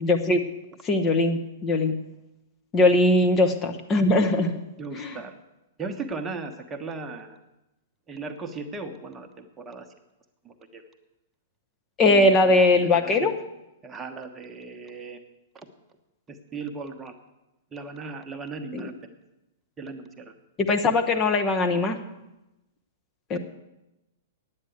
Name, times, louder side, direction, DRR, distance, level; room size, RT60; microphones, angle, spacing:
voice 1, 0.0-0.4 0.8-2.0 2.7-4.6 5.0-5.2 12.0-13.3 18.7-18.9 20.6-22.0 23.3-23.4, left 2 dB, 25° left, 4 dB, 1.0 m, -21 dB
voice 2, 4.8-5.3 5.8-7.4 8.1-9.9 10.4-10.8 12.1-12.3 12.8-13.3 13.8-15.2 15.5-15.7 16.3-17.2 17.7-19.2 19.8-20.3, right 4 dB, 15° right, 6 dB, 1.1 m, -37 dB
9.4 x 9.1 x 8.0 m, 0.95 s
figure-of-eight pair, 105°, 0 cm